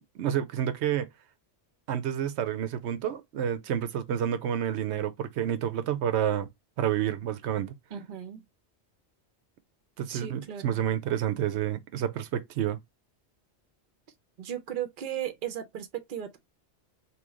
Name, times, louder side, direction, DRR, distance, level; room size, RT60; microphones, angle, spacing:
voice 1, 0.1-1.1 1.9-6.5 6.8-7.7 10.0-12.8, right 10 dB, 85° right, 0.9 m, -29 dB
voice 2, 7.9-8.4 10.1-10.8 14.4-16.4, right 10 dB, 55° right, 0.7 m, -36 dB
3.1 x 2.8 x 3.6 m
omnidirectional pair, 1.1 m